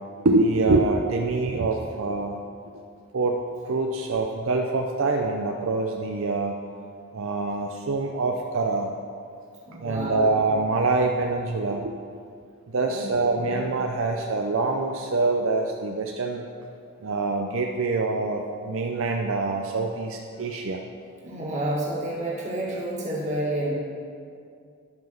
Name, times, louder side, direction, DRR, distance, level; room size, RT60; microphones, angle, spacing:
voice 1, 0.2-2.4 3.1-6.6 7.1-8.9 9.8-11.9 12.7-16.4 17.0-20.8, right 3 dB, 70° right, 2 dB, 0.5 m, -25 dB
voice 2, 9.7-10.4 12.9-13.1 13.4-13.6 21.2-23.7, right 1 dB, 35° right, -5 dB, 2.0 m, -30 dB
11.0 x 5.6 x 5.8 m, 2.4 s
head